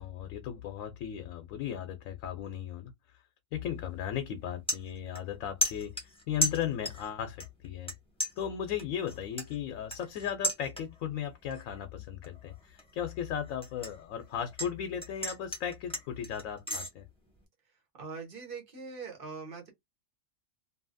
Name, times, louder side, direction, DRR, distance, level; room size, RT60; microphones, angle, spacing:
voice 1, 0.0-3.2 3.5-7.9 8.4-17.1, left 9 dB, 85° left, 1.0 m, -36 dB
sound 1, 3.7-4.0 4.3-5.3 5.6-7.1 7.4-7.9 8.2-11.1 11.5-11.8 12.2-14.7 15.0-16.9, left 1 dB, 5° left, 0.8 m, -35 dB
voice 2, 18.0-19.7, right 5 dB, 45° right, 1.2 m, -42 dB
2.7 x 2.6 x 2.5 m
omnidirectional pair, 1.3 m